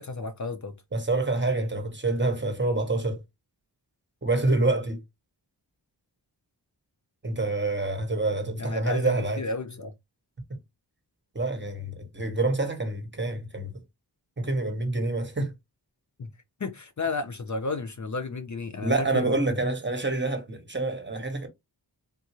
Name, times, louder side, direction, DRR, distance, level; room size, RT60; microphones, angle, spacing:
voice 1, 0.0-0.7 8.6-9.9 16.2-16.3 16.6-19.3, left 3 dB, 45° left, 0.6 m, -32 dB
voice 2, 0.9-3.2 4.2-5.0 7.2-9.4 11.3-13.7 14.4-15.5 18.8-21.5, right 2 dB, 25° right, 1.0 m, -27 dB
3.6 x 2.6 x 2.9 m
wide cardioid pair, 90°, 43 cm